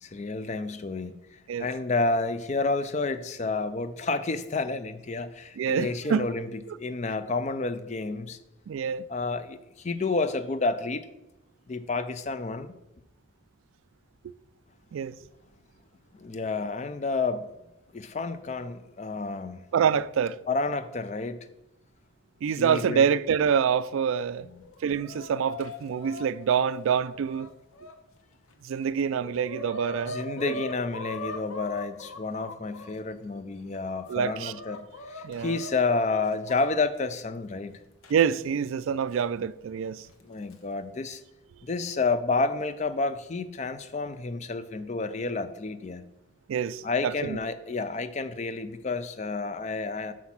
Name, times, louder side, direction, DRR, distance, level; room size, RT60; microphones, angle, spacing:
voice 1, 0.0-8.4 9.1-11.1 11.7-12.7 16.1-17.5 17.9-19.6 20.5-21.5 22.6-23.0 24.4-24.6 30.0-34.8 35.1-37.7 40.2-41.2 41.6-46.0 46.8-50.1, left 3 dB, 35° left, 0.4 m, -30 dB
voice 2, 5.6-6.3 8.7-9.0 14.9-15.1 19.7-20.4 22.4-24.5 24.8-27.5 28.6-30.6 34.1-34.5 35.2-35.6 38.1-40.1 46.5-47.4, right 7 dB, 75° right, 0.3 m, -26 dB
Chicken rooster, 24.5-27.9 28.5-28.6 28.9-32.9 33.5-36.8 38.0-38.1 39.1-39.2 40.2-40.5, left 2 dB, 90° left, 1.0 m, -41 dB
6.1 x 5.8 x 5.9 m
head